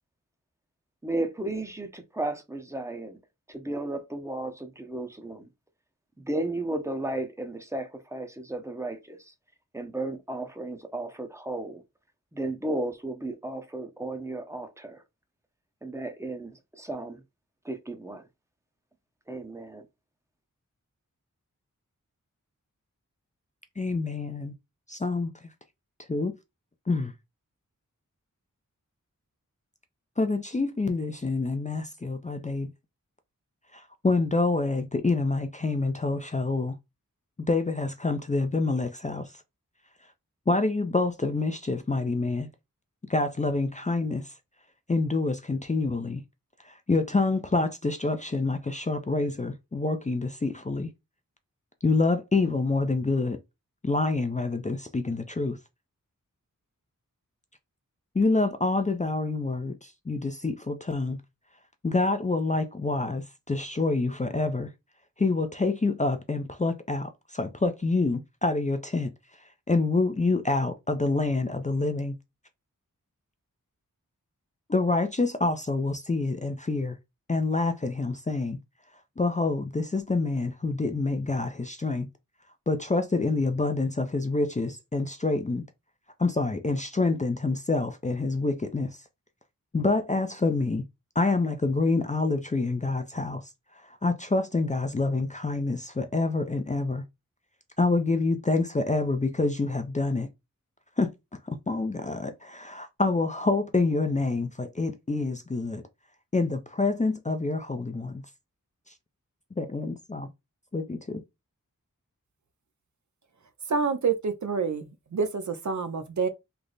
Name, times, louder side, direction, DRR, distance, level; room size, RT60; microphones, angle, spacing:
voice 1, 1.0-3.2 3.5-5.5 6.2-9.3 9.7-11.8 12.3-15.0 15.8-17.2 17.6-18.3 19.3-19.9, right 2 dB, 10° right, 0.7 m, -34 dB
voice 2, 23.8-24.5 24.9-25.3 26.1-26.3 26.9-27.1 30.2-32.7 33.7-36.7 37.5-39.4 40.5-42.5 43.1-44.3 44.9-46.2 46.6-50.9 51.8-53.4 53.8-55.6 58.1-61.2 61.8-64.7 65.2-69.1 69.4-72.1 74.7-77.0 77.3-78.6 79.2-82.1 82.7-85.6 86.2-89.0 89.7-90.8 91.2-93.4 93.7-97.0 97.8-100.3 101.0-101.1 101.4-105.8 106.3-108.2 109.6-110.3 110.7-111.2, left 3 dB, 25° left, 0.4 m, -27 dB
voice 3, 113.7-114.9 115.1-116.3, right 5 dB, 60° right, 0.6 m, -27 dB
3.3 x 2.0 x 3.8 m
wide cardioid pair, 50°, 33 cm